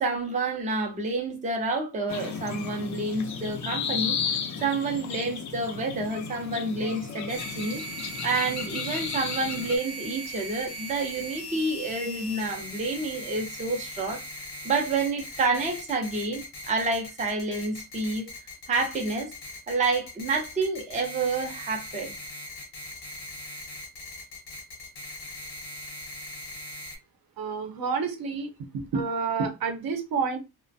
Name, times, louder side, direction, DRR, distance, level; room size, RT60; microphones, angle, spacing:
voice 1, 0.0-4.2 4.6-7.8 8.2-14.2 14.6-18.3 18.7-19.3 19.7-22.1, right 3 dB, 20° right, 0.5 m, -29 dB
sound 1, 2.1-9.8, left 6 dB, 45° left, 0.4 m, -34 dB
sound 2, 7.3-27.0, equal, 75° left, 0.9 m, -40 dB
voice 2, 27.4-28.5 28.9-30.4, right 5 dB, 60° right, 0.7 m, -29 dB
2.3 x 2.1 x 2.6 m
wide cardioid pair, 140°, 39 cm